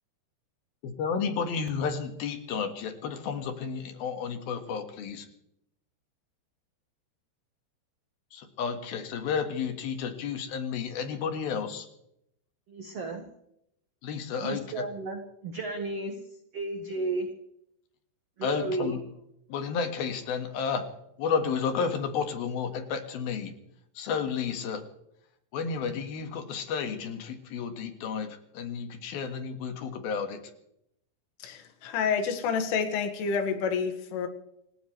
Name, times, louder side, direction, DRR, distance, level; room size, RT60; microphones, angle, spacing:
voice 1, 0.8-5.3 8.3-11.9 14.0-14.9 18.4-19.0 19.5-20.8 21.2-23.5 23.9-24.8 25.5-30.4, left 6 dB, 60° left, 7 dB, 3.1 m, -32 dB
voice 2, 12.7-13.2 14.4-16.1 16.5-17.3 18.4-18.9, right 2 dB, 90° right, 4 dB, 1.3 m, -33 dB
voice 3, 31.4-34.3, left 6 dB, 85° left, 6 dB, 4.3 m, -29 dB
28.0 x 15.5 x 3.3 m, 0.77 s
omnidirectional pair, 5.5 m